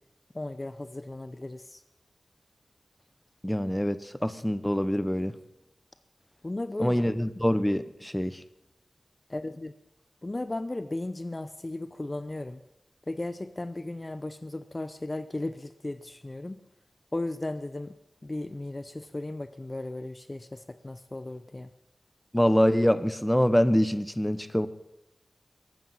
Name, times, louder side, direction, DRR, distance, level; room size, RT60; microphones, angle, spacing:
voice 1, 0.3-1.8 6.4-7.0 9.3-9.7 10.2-12.6 13.1-16.6 17.1-17.9 18.2-21.7, left 2 dB, 30° left, 0.7 m, -35 dB
voice 2, 3.4-5.4 6.8-8.4 22.3-24.7, equal, 5° left, 0.9 m, -25 dB
21.0 x 8.6 x 5.6 m
wide cardioid pair, 60°, 0 cm